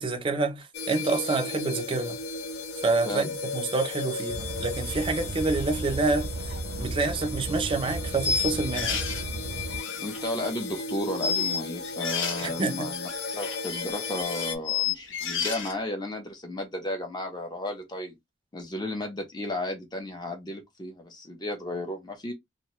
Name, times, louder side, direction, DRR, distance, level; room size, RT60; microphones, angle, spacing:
voice 1, 0.0-2.2 2.8-3.3 3.5-9.0 12.4-12.9, right 3 dB, 25° right, 0.5 m, -28 dB
sound 1, 0.7-14.6, left 4 dB, 55° left, 0.4 m, -36 dB
Car, 4.3-9.8, right 2 dB, 85° right, 0.5 m, -35 dB
sound 2, 6.5-6.6 7.0-7.1 8.2-9.2 9.7-10.8 11.1-12.5 12.9-15.8, left 6 dB, 85° left, 0.7 m, -31 dB
voice 2, 10.0-18.1 18.5-22.3, left 1 dB, 20° left, 0.7 m, -34 dB
2.5 x 2.2 x 2.9 m
head